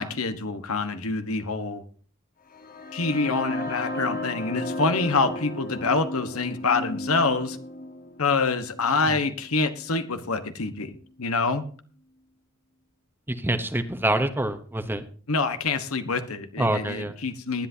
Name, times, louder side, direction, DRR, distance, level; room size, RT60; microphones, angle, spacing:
voice 1, 0.0-1.8 2.9-7.6 8.2-10.9 11.2-11.6 15.3-17.7, left 4 dB, 85° left, 9 dB, 1.3 m, -26 dB
sound 1, 2.5-10.4, left 1 dB, 40° left, 1.3 m, -35 dB
voice 2, 13.3-15.0 16.6-17.2, right 1 dB, 10° right, 9 dB, 0.9 m, -26 dB
19.0 x 10.5 x 2.8 m, 0.43 s
head